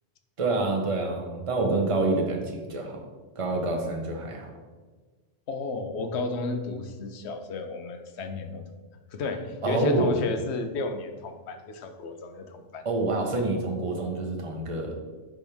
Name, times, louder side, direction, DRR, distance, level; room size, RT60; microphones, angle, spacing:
voice 1, 0.4-3.1 3.4-4.5 9.6-10.2 12.8-15.0, right 2 dB, 30° right, 2 dB, 0.9 m, -27 dB
voice 2, 5.5-8.6 9.1-12.9, left 3 dB, 65° left, 7 dB, 0.9 m, -33 dB
10.0 x 3.5 x 3.4 m, 1.3 s
omnidirectional pair, 1.3 m